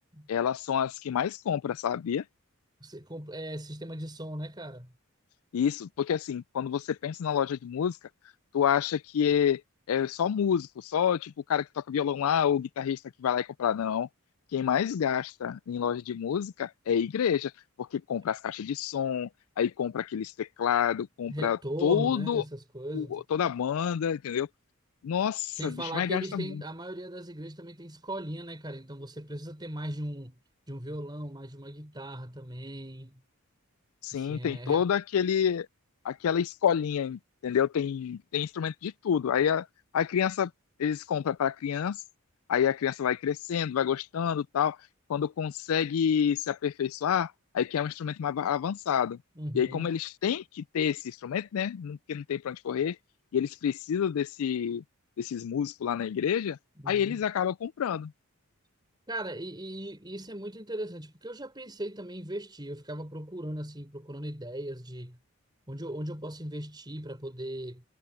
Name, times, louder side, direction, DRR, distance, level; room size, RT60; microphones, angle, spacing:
voice 1, 0.3-2.2 5.5-8.0 8.5-9.6 9.9-14.1 14.5-17.5 17.8-19.3 19.6-22.4 22.9-24.5 25.0-26.6 34.0-35.7 36.0-39.7 39.9-40.5 40.8-42.0 42.5-44.8 45.1-49.2 49.5-53.0 53.3-54.8 55.2-56.6 56.9-58.1, left 8 dB, 75° left, 0.4 m, -28 dB
voice 2, 2.8-4.9 21.3-23.2 25.5-30.4 30.7-33.2 34.1-34.8 49.4-49.9 56.8-57.2 59.1-65.2 65.7-67.8, right 1 dB, 20° right, 4.1 m, -38 dB
head